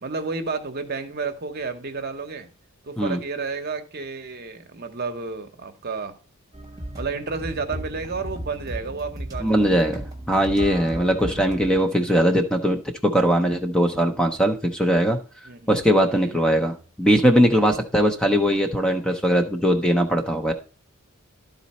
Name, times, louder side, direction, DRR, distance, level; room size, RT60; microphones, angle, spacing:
voice 1, 0.0-2.5 2.8-6.1 7.0-9.9 15.4-15.8 16.1-16.4, right 4 dB, 45° right, 6 dB, 0.8 m, -31 dB
sound 1, 6.5-11.8, right 1 dB, 15° right, 1.2 m, -35 dB
voice 2, 9.4-15.2 15.7-20.5, equal, 5° left, 4 dB, 0.5 m, -20 dB
11.5 x 4.0 x 4.2 m, 0.37 s
head